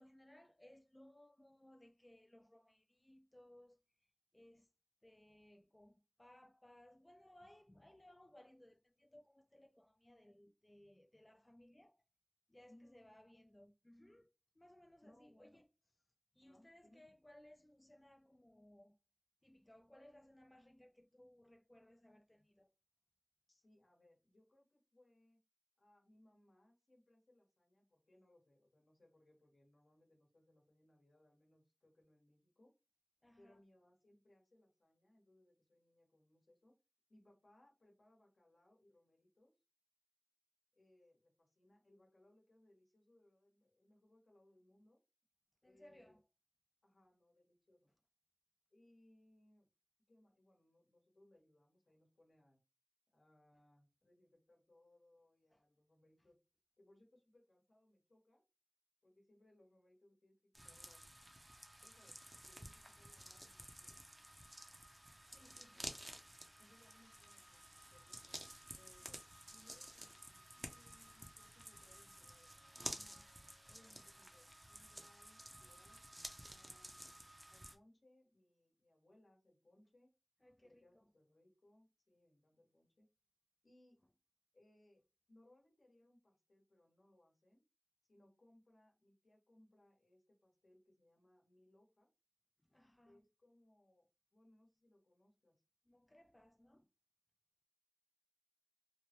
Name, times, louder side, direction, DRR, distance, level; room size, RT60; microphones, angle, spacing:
voice 1, 0.0-4.1 4.3-4.7 5.0-12.0 12.5-15.7 16.3-19.0 19.4-22.7 33.2-33.6 45.6-46.2 55.5-55.6 65.3-65.8 80.4-81.1 92.7-93.2 95.9-96.9, left 1 dB, 25° left, 0.3 m, -64 dB
voice 2, 12.7-13.0 15.0-15.6 16.4-17.0 23.5-25.4 25.8-32.7 33.4-36.8 37.1-39.5 40.7-45.0 45.6-46.2 46.8-47.9 48.7-49.7 50.1-52.6 53.1-56.4 56.8-58.4 59.0-61.1 61.8-62.2 62.4-64.0 66.6-68.3 68.7-69.2 69.5-73.3 73.7-76.0 76.4-80.1 80.6-83.1 83.6-84.0 84.5-85.0 85.3-87.6 88.1-92.1 93.0-95.6, left 1 dB, 85° left, 1.0 m, -70 dB
sound 1, 60.5-77.7, right 1 dB, 20° right, 0.6 m, -53 dB
3.2 x 2.1 x 2.8 m
wide cardioid pair, 40°, 0 cm